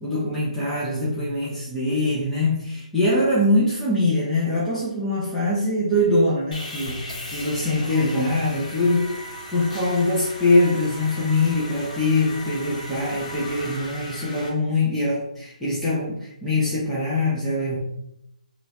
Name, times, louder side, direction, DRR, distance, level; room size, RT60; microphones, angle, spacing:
voice 1, 0.0-7.1 7.3-9.2 9.5-17.8, left 2 dB, 5° left, -9 dB, 0.6 m, -23 dB
Sawing, 6.5-14.5, left 1 dB, 55° left, 1.1 m, -37 dB
3.1 x 2.4 x 4.0 m, 0.78 s
hypercardioid pair, 165°, 4 cm